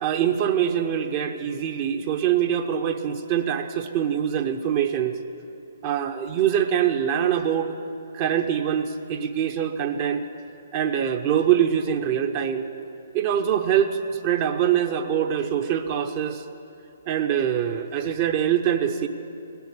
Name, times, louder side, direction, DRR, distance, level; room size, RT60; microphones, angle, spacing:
voice 1, 0.0-5.2 5.8-7.7 8.1-10.2 10.7-12.7 13.1-16.4 17.1-19.1, right 9 dB, 35° right, 6 dB, 0.7 m, -24 dB
18.0 x 7.0 x 9.8 m, 2.6 s
figure-of-eight pair, 130°, 0 cm